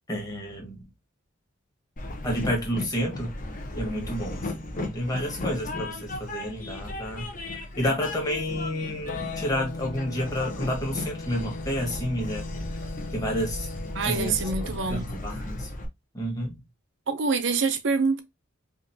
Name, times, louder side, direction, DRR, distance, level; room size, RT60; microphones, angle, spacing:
voice 1, 0.1-0.8 2.2-3.4 3.8-7.3 7.8-12.5 13.1-13.7 14.0-15.7 16.1-16.6, equal, 20° left, 1.4 m, -30 dB
Train, 2.0-15.8, left 2 dB, 40° left, 0.9 m, -36 dB
sound 1, 9.1-14.9, left 3 dB, 85° left, 1.2 m, -39 dB
voice 2, 13.9-15.1 17.1-18.2, right 4 dB, 65° right, 0.6 m, -25 dB
5.1 x 2.5 x 2.7 m
head